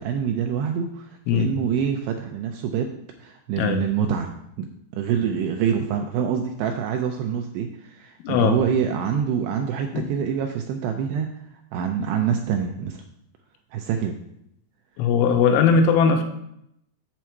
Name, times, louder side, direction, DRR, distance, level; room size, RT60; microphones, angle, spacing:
voice 1, 0.0-2.9 3.2-4.3 4.6-4.7 4.9-11.3 11.7-13.0 13.7-14.2, right 7 dB, 85° right, 4 dB, 2.4 m, -25 dB
voice 2, 8.2-8.6 9.9-10.1 15.0-16.2, left 6 dB, 85° left, 5 dB, 3.3 m, -19 dB
7.3 x 7.1 x 4.5 m, 0.78 s
omnidirectional pair, 5.4 m